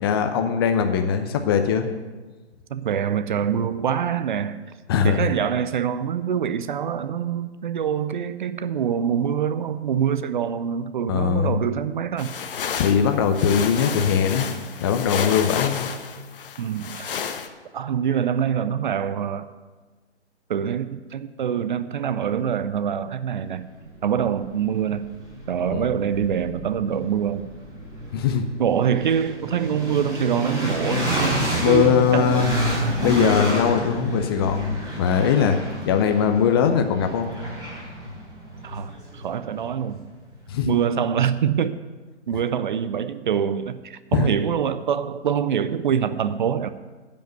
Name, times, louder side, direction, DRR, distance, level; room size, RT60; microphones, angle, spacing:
voice 1, 0.0-1.9 4.9-5.2 11.1-11.6 12.8-14.5 14.8-15.9 25.7-25.9 28.1-28.4 31.6-32.5 33.0-37.3 40.5-40.7 44.1-44.3, left 7 dB, 20° left, 6 dB, 0.6 m, -21 dB
voice 2, 2.7-4.6 5.0-12.3 16.6-17.2 17.7-19.5 20.5-23.7 24.0-25.1 25.5-27.5 28.6-32.6 38.6-40.0 40.7-41.8 42.3-46.7, right 8 dB, 45° right, 13 dB, 0.6 m, -25 dB
sound 1, 12.2-17.5, left 7 dB, 50° left, 1.1 m, -31 dB
sound 2, 23.5-23.6 24.0-40.0, equal, 10° right, 3.9 m, -29 dB
15.0 x 5.4 x 8.1 m, 1.3 s
figure-of-eight pair, 130°, 35 cm